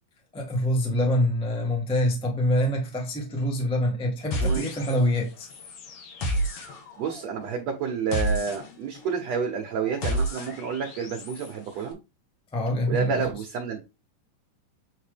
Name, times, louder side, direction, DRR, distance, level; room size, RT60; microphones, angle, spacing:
voice 1, 0.3-5.5 12.5-13.1, left 1 dB, 10° left, 0.3 m, -25 dB
sound 1, 4.3-5.2 5.5-11.5, right 1 dB, 55° left, 2.0 m, -31 dB
voice 2, 7.0-12.0 12.9-13.8, right 6 dB, 65° right, 1.9 m, -29 dB
8.3 x 3.9 x 3.5 m
omnidirectional pair, 3.8 m